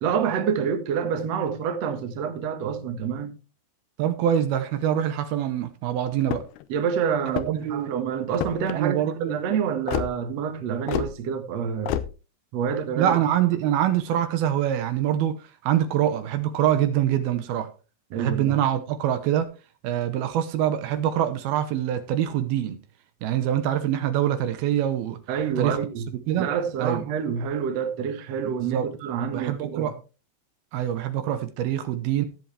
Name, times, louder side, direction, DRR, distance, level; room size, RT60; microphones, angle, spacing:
voice 1, 0.0-3.4 6.7-12.0 12.5-13.2 18.1-18.6 25.3-26.1 26.4-29.9, right 7 dB, 55° right, 2.2 m, -27 dB
voice 2, 4.0-6.4 7.5-7.9 8.7-9.4 13.0-15.4 15.6-17.7 18.2-19.5 19.8-22.8 23.2-25.2 25.6-25.8 26.3-26.5 26.8-27.0 28.4-28.9 29.3-30.0 30.7-32.3, right 11 dB, 75° right, 2.9 m, -24 dB
sound 1, 6.2-6.7 7.2-7.7 8.3-8.8 9.9-10.1 10.9-11.1 11.9-12.1, left 12 dB, 85° left, 2.8 m, -28 dB
16.5 x 7.8 x 3.4 m
omnidirectional pair, 4.5 m